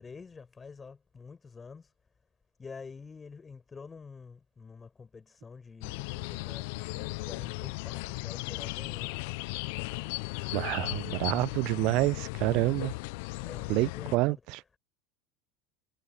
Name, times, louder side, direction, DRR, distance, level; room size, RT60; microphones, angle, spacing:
voice 1, 0.0-1.9 2.6-9.1 13.4-14.8, left 5 dB, 20° left, 5.9 m, -48 dB
sound 1, 5.8-14.2, left 27 dB, 60° left, 1.2 m, -36 dB
voice 2, 10.5-12.9 13.7-14.6, right 23 dB, 55° right, 0.6 m, -28 dB
figure-of-eight pair, 75°, 0 cm